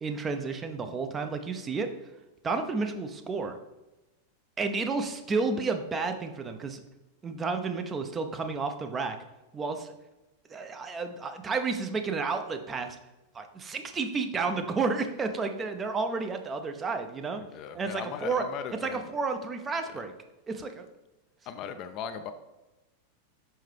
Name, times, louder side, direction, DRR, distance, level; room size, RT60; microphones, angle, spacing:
voice 1, 0.0-1.9 2.4-3.6 4.6-6.8 7.2-9.2 9.5-9.9 10.5-13.0 13.3-17.4 17.7-18.5 18.8-20.1 20.5-20.9, right 4 dB, 20° right, 6 dB, 0.5 m, -31 dB
voice 2, 17.4-19.1 19.9-20.0 21.5-22.3, left 7 dB, 40° left, 9 dB, 0.4 m, -38 dB
5.5 x 5.5 x 3.3 m, 1.0 s
figure-of-eight pair, 90°, 0 cm